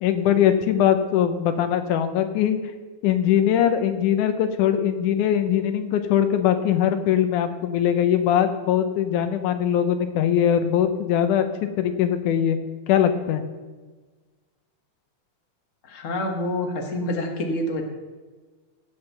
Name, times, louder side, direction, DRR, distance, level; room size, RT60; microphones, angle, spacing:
voice 1, 0.0-2.6 3.0-11.5 11.8-12.6 12.9-13.4, left 9 dB, 85° left, 9 dB, 2.4 m, -21 dB
voice 2, 15.8-17.8, left 1 dB, 40° left, 3 dB, 1.1 m, -27 dB
16.0 x 5.5 x 6.7 m, 1.3 s
omnidirectional pair, 3.5 m